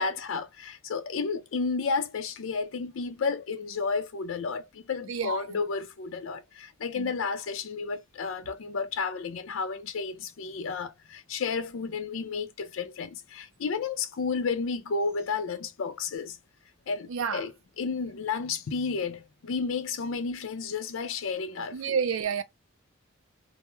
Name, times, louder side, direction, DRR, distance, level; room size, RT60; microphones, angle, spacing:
voice 1, 0.0-16.4 16.9-22.0, left 4 dB, 75° left, 0.4 m, -32 dB
voice 2, 5.1-5.4 7.0-7.1 17.1-17.4 21.7-22.4, right 6 dB, 85° right, 0.4 m, -29 dB
2.2 x 2.0 x 2.9 m
head